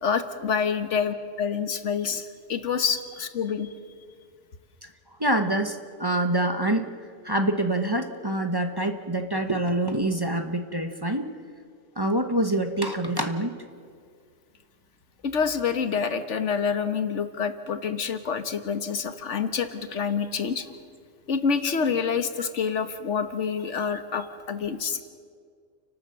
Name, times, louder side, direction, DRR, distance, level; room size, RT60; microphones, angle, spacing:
voice 1, 0.0-3.7 15.2-20.7 21.3-25.0, left 6 dB, 75° left, 10 dB, 1.5 m, -27 dB
voice 2, 5.2-6.9 7.2-11.3 12.0-13.5, right 1 dB, 20° right, 5 dB, 1.0 m, -26 dB
30.0 x 12.5 x 7.8 m, 2.1 s
omnidirectional pair, 1.3 m